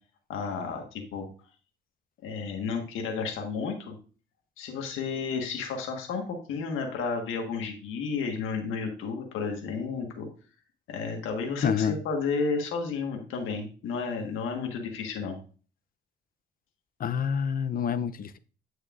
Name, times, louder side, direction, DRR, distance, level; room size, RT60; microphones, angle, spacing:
voice 1, 0.3-1.3 2.2-3.9 4.6-10.3 10.9-15.4, left 5 dB, 90° left, 3 dB, 1.5 m, -32 dB
voice 2, 11.6-12.0 17.0-18.4, left 7 dB, 45° left, 13 dB, 0.6 m, -27 dB
9.0 x 6.4 x 2.5 m, 0.39 s
cardioid pair, 90°, 20 cm